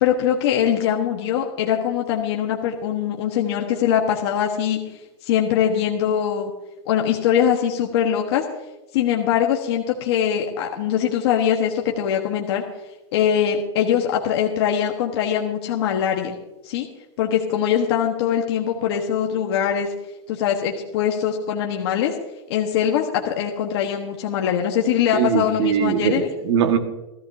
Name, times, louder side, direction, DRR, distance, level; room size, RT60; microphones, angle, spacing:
voice 1, 0.0-4.8 5.2-6.5 6.8-8.4 8.9-12.6 13.1-16.4 16.6-16.9 17.2-19.9 20.3-22.1 22.5-26.3, left 9 dB, 55° left, 1 dB, 1.3 m, -22 dB
voice 2, 25.1-26.8, right 8 dB, 60° right, 5 dB, 1.7 m, -21 dB
18.0 x 13.5 x 2.7 m, 0.99 s
supercardioid pair, 165°, 16 cm